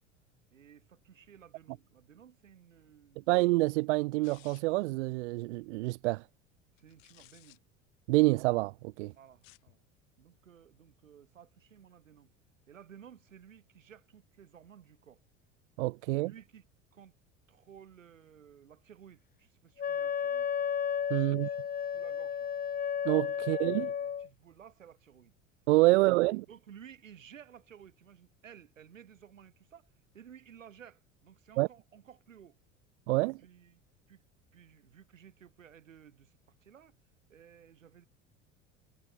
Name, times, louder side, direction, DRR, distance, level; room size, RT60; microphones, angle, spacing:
voice 1, 0.5-3.4 6.8-7.6 9.2-9.8 10.2-12.3 12.7-15.2 16.2-17.1 17.5-20.5 21.1-22.5 23.4-25.3 25.9-32.6 33.4-33.8 34.1-34.2 34.5-37.0 37.3-38.0, right 8 dB, 80° right, 7.7 m, -56 dB
voice 2, 3.3-6.2 8.1-9.1 15.8-16.3 21.1-21.5 23.0-23.9 25.7-26.4 31.6-31.7 33.1-33.4, right 22 dB, 65° right, 0.5 m, -27 dB
sound 1, 4.2-4.9 6.8-7.6 9.3-9.7, left 31 dB, 60° left, 7.1 m, -59 dB
Wind instrument woodwind instrument, 19.8-24.3, left 8 dB, 25° left, 1.0 m, -33 dB
figure-of-eight pair, 70°, 38 cm